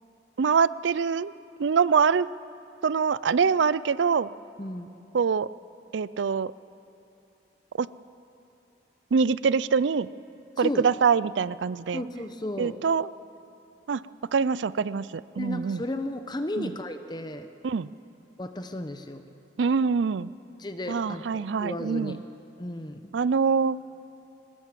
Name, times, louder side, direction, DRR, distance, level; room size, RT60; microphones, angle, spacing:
voice 1, 0.4-1.3 1.6-2.3 2.8-4.3 5.1-5.5 5.9-6.5 7.8-7.9 9.1-10.1 10.6-12.0 12.6-13.1 13.9-14.0 14.3-15.8 16.6-16.7 17.6-17.9 19.6-20.3 20.9-22.2 23.1-23.8, right 5 dB, 75° right, 18 dB, 0.4 m, -24 dB
voice 2, 11.9-12.8 15.4-17.5 18.4-19.2 20.6-22.2 22.6-23.1, left 1 dB, 25° left, 8 dB, 0.8 m, -34 dB
21.0 x 19.0 x 7.5 m, 2.8 s
head